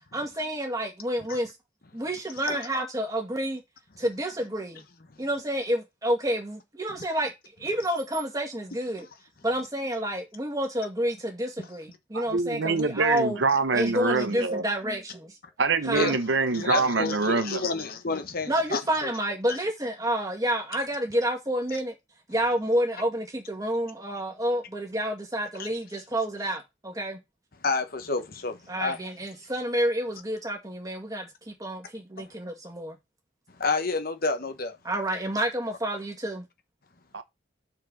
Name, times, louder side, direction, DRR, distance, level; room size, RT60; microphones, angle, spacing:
voice 1, 0.1-1.5 1.9-3.6 4.0-4.8 5.2-7.3 7.6-9.1 9.4-13.4 13.7-15.3 15.8-16.1 18.5-21.9 22.3-27.2 28.7-33.0 34.8-36.5, right 1 dB, 20° right, 2.2 m, -29 dB
voice 2, 12.1-14.6 15.6-17.6 37.1-37.2, right 4 dB, 75° right, 0.8 m, -25 dB
voice 3, 16.5-19.1 25.6-25.7 27.6-29.0 32.2-32.3 33.6-34.8, left 3 dB, 55° left, 1.2 m, -29 dB
5.7 x 4.7 x 6.3 m
head